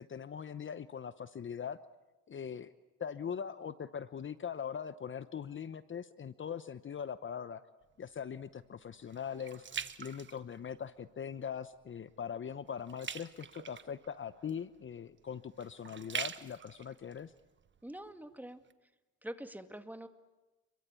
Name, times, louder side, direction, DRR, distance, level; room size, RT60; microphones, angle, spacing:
voice 1, 0.0-1.8 2.3-2.7 3.0-7.6 8.0-9.6 10.0-17.3, left 7 dB, 40° left, 14 dB, 0.9 m, -41 dB
sound 1, 7.8-11.1 11.6-11.9 12.2-18.1 18.7-18.8, right 6 dB, 40° right, 1.5 m, -45 dB
voice 2, 17.8-18.6 19.2-20.1, right 1 dB, 5° right, 8 dB, 2.1 m, -45 dB
29.5 x 23.0 x 8.4 m, 1.1 s
cardioid pair, 90°, 30 cm